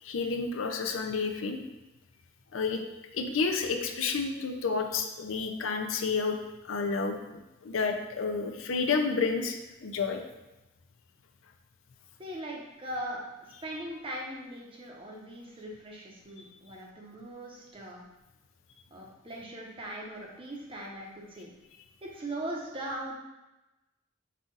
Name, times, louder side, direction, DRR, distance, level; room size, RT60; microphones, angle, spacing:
voice 1, 0.0-1.6 2.5-2.8 3.1-6.4 6.6-9.6 9.8-10.2, left 4 dB, 85° left, 5 dB, 0.5 m, -30 dB
voice 2, 12.2-18.0 18.9-21.5 22.0-23.1, right 1 dB, 25° right, -2 dB, 0.8 m, -40 dB
5.5 x 2.4 x 3.8 m, 1.0 s
head